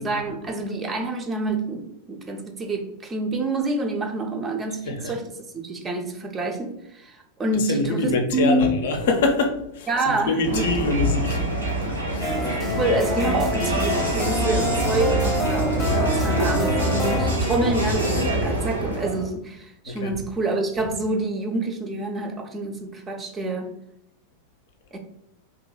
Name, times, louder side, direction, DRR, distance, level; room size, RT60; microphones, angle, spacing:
voice 1, 0.0-8.7 9.9-10.7 12.3-23.7 24.9-25.0, right 2 dB, 20° right, 4 dB, 0.4 m, -27 dB
voice 2, 7.6-9.9 10.3-11.7 12.1-12.3 19.9-20.2, left 3 dB, 55° left, 4 dB, 0.4 m, -24 dB
Crowd, 10.4-19.3, right 1 dB, 85° right, 0.7 m, -25 dB
sound 1, 12.2-17.3, left 1 dB, 15° left, 0.7 m, -27 dB
2.8 x 2.6 x 2.2 m, 0.81 s
figure-of-eight pair, 90°, 0 cm